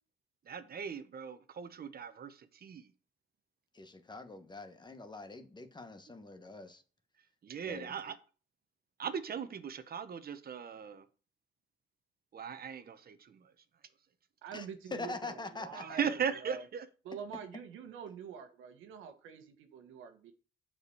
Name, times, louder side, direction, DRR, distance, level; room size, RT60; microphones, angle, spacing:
voice 1, 0.5-2.3 2.6-2.8 7.4-8.2 9.0-11.0 12.3-13.1 15.8-16.9, right 7 dB, 50° right, 1.1 m, -38 dB
voice 2, 3.7-6.8 7.7-7.9 14.5-14.7 14.9-15.8, left 3 dB, 20° left, 1.3 m, -44 dB
voice 3, 14.4-16.7 17.0-20.3, right 7 dB, 90° right, 1.4 m, -46 dB
8.0 x 5.0 x 7.1 m
cardioid pair, 90°, 20 cm